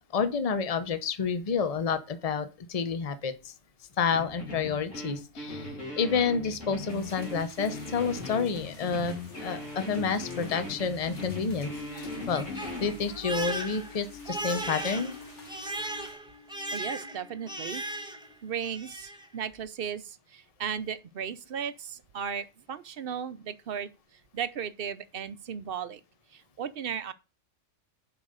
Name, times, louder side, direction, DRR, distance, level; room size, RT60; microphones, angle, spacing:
voice 1, 0.1-3.3 4.0-5.7 6.0-9.2 9.4-15.2, left 5 dB, 35° left, 0.8 m, -29 dB
sound 1, 4.1-13.0, left 2 dB, 85° left, 3.6 m, -39 dB
sound 2, 6.9-16.1, left 1 dB, 70° left, 2.4 m, -51 dB
Crying sobbing, 11.5-18.3 18.6-19.3, right 1 dB, 5° right, 1.1 m, -37 dB
voice 2, 16.7-17.8 18.4-26.0 26.3-27.1, right 8 dB, 55° right, 0.8 m, -36 dB
7.2 x 5.4 x 6.5 m
omnidirectional pair, 1.3 m